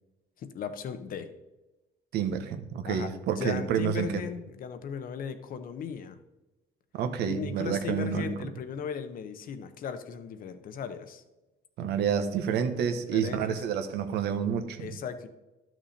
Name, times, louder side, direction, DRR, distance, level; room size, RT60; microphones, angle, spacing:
voice 1, 0.4-1.3 2.9-6.2 7.2-11.2 12.9-13.6 14.8-15.3, left 7 dB, 55° left, 9 dB, 1.0 m, -37 dB
voice 2, 2.1-4.1 6.9-8.3 11.8-14.9, right 8 dB, 75° right, 9 dB, 1.1 m, -29 dB
12.0 x 6.2 x 4.3 m, 1.0 s
cardioid pair, 110°, 17 cm